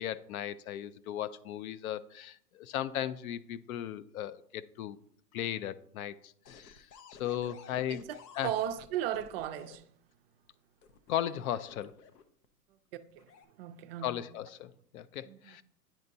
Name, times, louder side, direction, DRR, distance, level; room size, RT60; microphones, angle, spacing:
voice 1, 0.0-5.0 5.3-6.9 7.2-8.0 8.4-8.5 11.1-12.0 14.0-15.6, left 11 dB, 65° left, 0.5 m, -36 dB
sound 1, 6.5-9.8 10.8-12.5 13.1-13.5, left 6 dB, 80° left, 0.8 m, -54 dB
voice 2, 7.9-9.9 12.9-14.1 15.2-15.6, right 11 dB, 40° right, 0.4 m, -37 dB
9.1 x 4.2 x 2.6 m
hypercardioid pair, 125°, 48 cm